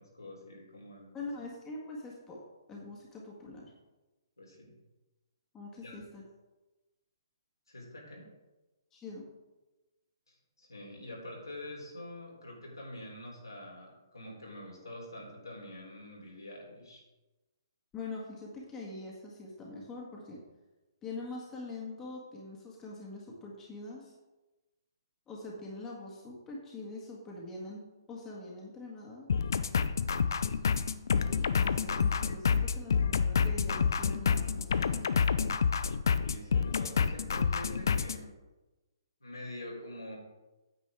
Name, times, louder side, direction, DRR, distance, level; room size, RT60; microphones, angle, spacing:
voice 1, 0.0-1.1 4.4-4.7 5.8-5.9 7.7-8.3 10.3-17.0 36.2-38.4 39.2-40.2, left 1 dB, 80° left, -3 dB, 3.4 m, -46 dB
voice 2, 1.1-2.4 2.7-3.7 5.5-6.2 8.9-9.3 17.9-20.4 21.0-24.1 25.3-29.3 31.1-35.1, left 2 dB, 15° left, -3 dB, 1.8 m, -44 dB
sound 1, 29.3-38.2, left 6 dB, 60° left, 0.5 m, -28 dB
9.1 x 8.0 x 3.6 m, 1.1 s
figure-of-eight pair, 130°, 2 cm